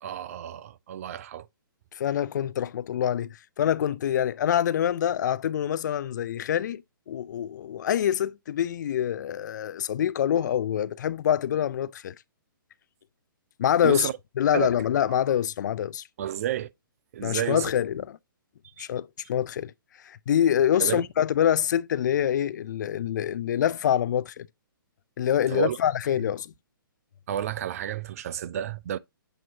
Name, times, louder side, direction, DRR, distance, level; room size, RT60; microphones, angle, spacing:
voice 1, 0.0-1.5 13.8-14.1 14.5-14.7 16.2-16.7 17.1-17.7 18.8-18.9 20.8-21.0 25.5-25.8 27.3-29.0, right 10 dB, 40° right, 0.4 m, -31 dB
voice 2, 1.9-12.1 13.6-14.1 14.4-16.0 17.2-18.2 18.8-19.7 20.0-24.5 25.2-26.5, left 10 dB, 55° left, 0.4 m, -25 dB
7.8 x 2.7 x 4.6 m
hypercardioid pair, 150°, 12 cm